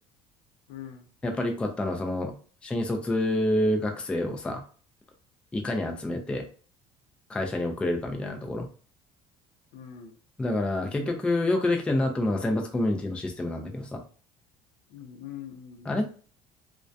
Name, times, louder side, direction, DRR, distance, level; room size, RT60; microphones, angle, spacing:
voice 1, 0.7-1.1 9.7-10.2 14.9-16.0, left 9 dB, 75° left, 5 dB, 0.5 m, -43 dB
voice 2, 1.2-2.3 2.6-4.6 5.5-6.4 7.3-8.7 10.4-14.0 15.9-16.1, left 1 dB, 10° left, 3 dB, 0.3 m, -27 dB
2.2 x 2.2 x 2.6 m, 0.40 s
cardioid pair, 155°, 13 cm